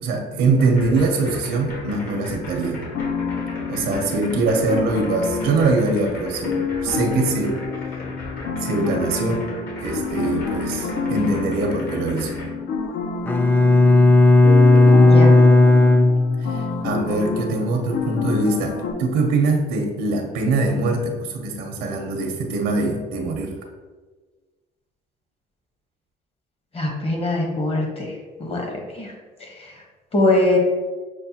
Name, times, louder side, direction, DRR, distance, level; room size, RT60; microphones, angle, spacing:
voice 1, 0.0-3.0 3.7-7.6 8.6-9.4 9.8-12.5 16.5-23.5, right 3 dB, 90° right, 2 dB, 0.6 m, -23 dB
sound 1, 0.6-12.5, left 2 dB, 60° left, 1.3 m, -36 dB
sound 2, 2.9-18.9, left 5 dB, 75° left, 0.5 m, -28 dB
Bowed string instrument, 13.3-16.8, left 2 dB, 10° left, 0.3 m, -13 dB
voice 2, 14.9-15.3 26.7-28.1 28.4-28.7 28.9-29.1 29.4-29.7 30.1-30.6, left 1 dB, 35° left, 0 dB, 1.0 m, -22 dB
6.3 x 2.2 x 2.8 m, 1.4 s
cardioid pair, 110°, 17 cm